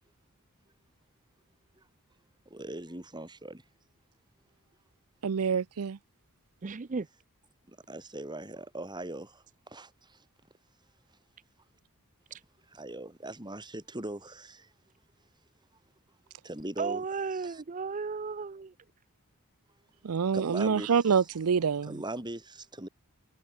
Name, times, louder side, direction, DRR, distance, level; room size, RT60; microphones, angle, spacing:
voice 1, 2.5-3.6 7.7-10.2 12.7-14.7 16.4-17.0 17.4-17.6 20.3-20.9 21.9-22.9, right 1 dB, 20° right, 5.4 m, -40 dB
voice 2, 5.2-6.0 20.0-22.0, right 6 dB, 80° right, 0.5 m, -26 dB
voice 3, 6.6-7.1 12.3-12.4 16.8-18.7, right 5 dB, 35° right, 0.5 m, -34 dB
head